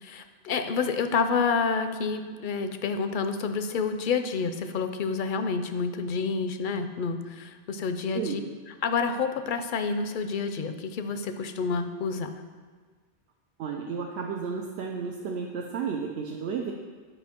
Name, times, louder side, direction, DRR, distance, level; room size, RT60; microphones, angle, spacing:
voice 1, 0.0-8.4 8.8-12.4, left 5 dB, 60° left, 8 dB, 0.6 m, -29 dB
voice 2, 13.6-16.7, right 6 dB, 80° right, 1 dB, 0.9 m, -32 dB
8.2 x 5.0 x 4.3 m, 1.5 s
omnidirectional pair, 1.1 m